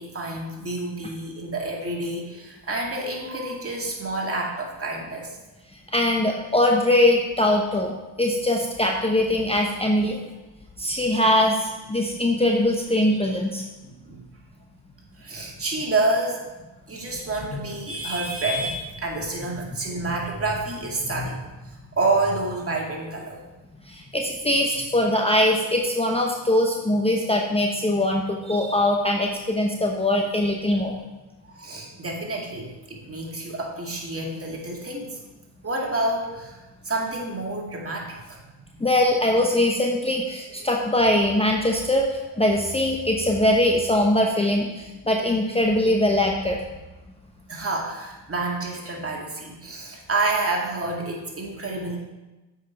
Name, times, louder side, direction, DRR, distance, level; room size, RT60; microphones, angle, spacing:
voice 1, 0.0-5.3 13.8-14.2 15.2-16.4 16.9-21.4 22.0-23.4 31.4-35.2 35.6-36.6 36.8-38.4 38.7-38.8 47.5-52.0, right 2 dB, 30° right, -1 dB, 2.2 m, -28 dB
voice 2, 5.9-10.2 10.8-13.6 17.5-17.6 21.0-21.3 23.8-31.0 38.8-46.6, left 1 dB, 15° left, 0 dB, 0.9 m, -22 dB
7.6 x 5.6 x 4.6 m, 1.1 s
supercardioid pair, 60°, 44 cm